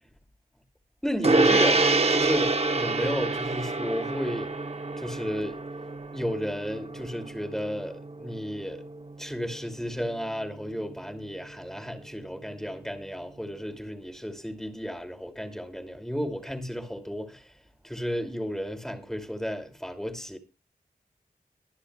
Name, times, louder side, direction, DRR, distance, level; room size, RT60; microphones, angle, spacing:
voice 1, 1.0-4.5 5.0-5.6 6.1-8.8 9.2-17.4 17.8-20.4, equal, 5° left, 2.5 m, -33 dB
Gong, 1.2-10.9, right 3 dB, 40° right, 0.9 m, -27 dB
24.0 x 9.8 x 2.3 m
wide cardioid pair, 75°, 16 cm